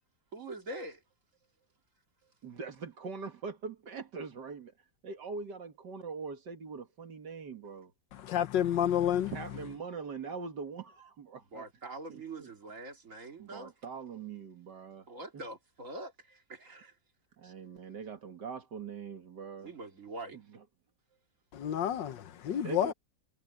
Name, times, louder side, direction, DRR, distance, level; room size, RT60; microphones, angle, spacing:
voice 1, 0.3-1.0 11.5-13.7 15.1-16.9 17.4-17.5 19.6-20.4, right 2 dB, 45° right, 2.8 m, -44 dB
voice 2, 2.4-4.7 5.0-7.9 9.3-11.7 12.1-12.5 13.4-15.1 17.4-19.7 20.3-20.6 22.5-22.9, right 5 dB, 65° right, 2.4 m, -42 dB
voice 3, 8.1-9.3 21.5-22.9, left 10 dB, 75° left, 1.5 m, -30 dB
omnidirectional pair, 2.0 m